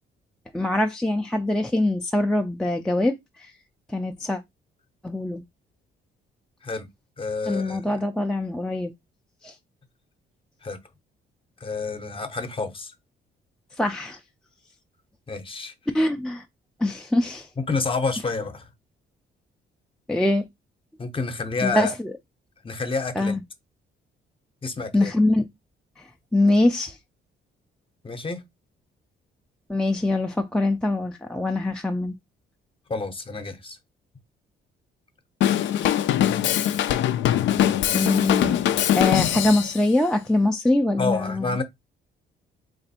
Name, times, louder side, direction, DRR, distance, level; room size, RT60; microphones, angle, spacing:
voice 1, 0.5-3.2 3.9-4.4 5.0-5.4 7.5-8.9 9.4-9.5 13.8-14.2 15.9-16.4 16.8-17.5 20.1-20.4 21.6-22.1 23.2-23.4 24.9-25.4 26.3-27.0 29.7-32.1 37.9-38.6 39.0-41.6, left 2 dB, 5° left, 0.4 m, -23 dB
voice 2, 7.2-7.9 10.6-10.8 11.6-12.9 15.3-15.7 17.6-18.7 21.0-21.9 22.6-23.4 24.6-25.1 28.0-28.4 32.9-33.8 41.0-41.6, left 4 dB, 25° left, 0.7 m, -29 dB
Drum kit / Drum, 35.4-39.8, left 11 dB, 70° left, 0.4 m, -22 dB
3.3 x 2.6 x 4.1 m
cardioid pair, 90°, 20 cm